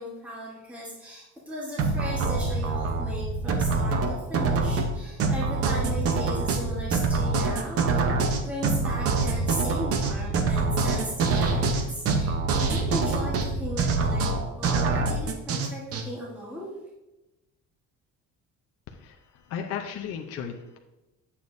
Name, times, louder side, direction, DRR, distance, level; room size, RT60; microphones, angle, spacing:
voice 1, 0.0-8.1 8.4-16.7, equal, 5° right, -6 dB, 1.2 m, -37 dB
sound 1, 1.8-16.0, right 3 dB, 50° right, 0.8 m, -25 dB
voice 2, 18.9-20.8, left 7 dB, 50° left, 3 dB, 0.7 m, -35 dB
8.5 x 6.9 x 2.6 m, 1.0 s
cardioid pair, 160°, 31 cm